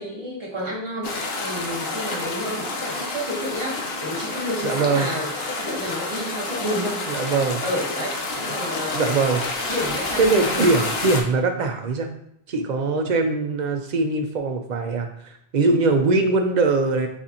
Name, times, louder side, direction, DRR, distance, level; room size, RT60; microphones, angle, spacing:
voice 1, 0.0-7.0 7.6-9.4 9.7-10.7, equal, 30° right, -5 dB, 1.3 m, -30 dB
sound 1, 1.0-11.2, left 3 dB, 70° left, 1.0 m, -29 dB
voice 2, 4.6-5.1 7.1-7.6 8.9-9.4 10.2-12.1 12.5-17.1, right 3 dB, 55° right, 5 dB, 0.6 m, -22 dB
6.8 x 2.4 x 2.8 m, 0.74 s
omnidirectional pair, 1.1 m